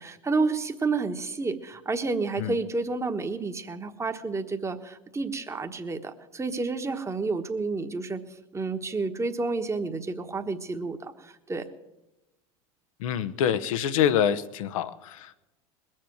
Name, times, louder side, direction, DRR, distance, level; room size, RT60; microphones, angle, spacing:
voice 1, 0.0-8.2 8.5-11.7, right 3 dB, 15° right, 6 dB, 1.3 m, -30 dB
voice 2, 13.0-15.3, left 9 dB, 75° left, 12 dB, 0.9 m, -26 dB
21.0 x 7.6 x 7.8 m, 0.98 s
hypercardioid pair, 85°, 18 cm